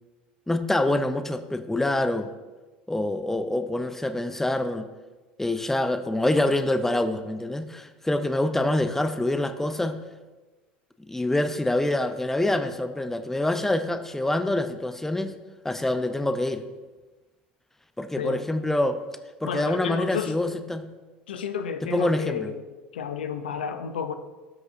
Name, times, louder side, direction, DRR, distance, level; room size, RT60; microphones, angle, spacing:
voice 1, 0.5-2.3 2.9-4.9 5.4-10.0 11.1-15.3 15.6-16.6 18.0-19.0 19.4-20.9 21.9-22.5, left 1 dB, 5° left, 9 dB, 0.6 m, -26 dB
voice 2, 19.4-20.3 21.3-22.6 22.9-24.1, left 7 dB, 85° left, 9 dB, 0.5 m, -31 dB
15.5 x 6.1 x 2.6 m, 1.2 s
hypercardioid pair, 75°, 5 cm